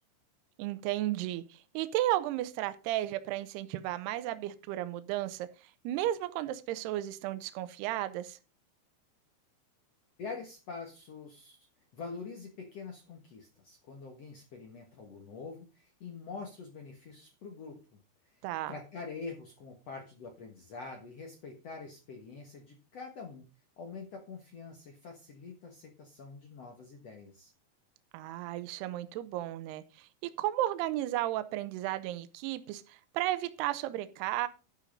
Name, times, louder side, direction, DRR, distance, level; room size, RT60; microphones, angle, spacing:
voice 1, 0.6-8.4 18.4-18.7 28.1-34.5, right 14 dB, 75° right, 2.6 m, -34 dB
voice 2, 10.2-11.7 11.9-17.8 18.2-18.3 18.7-23.4 23.8-27.5, left 4 dB, 75° left, 1.4 m, -45 dB
11.5 x 5.6 x 5.2 m
omnidirectional pair, 5.2 m